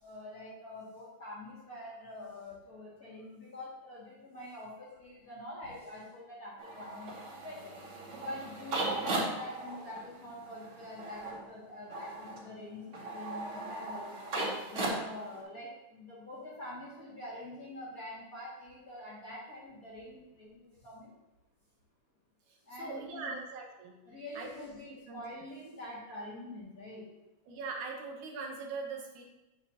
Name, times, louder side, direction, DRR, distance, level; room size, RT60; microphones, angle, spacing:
voice 1, 0.0-7.8 8.2-14.3 14.7-21.1 22.6-23.3 24.0-27.1, left 1 dB, 30° left, -8 dB, 2.6 m, -45 dB
sound 1, 6.6-15.4, right 2 dB, 45° right, 2.9 m, -38 dB
voice 2, 22.5-24.0 24.4-25.2 27.5-29.2, right 4 dB, 75° right, 0 dB, 2.6 m, -42 dB
8.9 x 8.6 x 2.9 m, 0.98 s
omnidirectional pair, 3.5 m